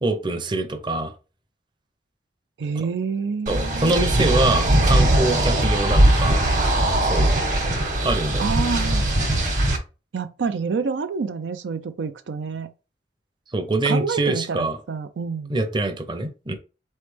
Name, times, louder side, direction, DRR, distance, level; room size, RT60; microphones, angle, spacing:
voice 1, 0.0-1.1 2.8-2.9 3.5-6.5 7.0-7.3 8.0-8.5 13.5-14.8 15.5-16.6, right 2 dB, 25° right, 0.6 m, -24 dB
voice 2, 2.6-3.9 8.4-9.1 10.1-12.7 13.8-15.5, right 5 dB, 90° right, 0.4 m, -27 dB
sound 1, 3.5-9.8, right 1 dB, 45° right, 1.1 m, -20 dB
4.1 x 3.2 x 3.3 m
head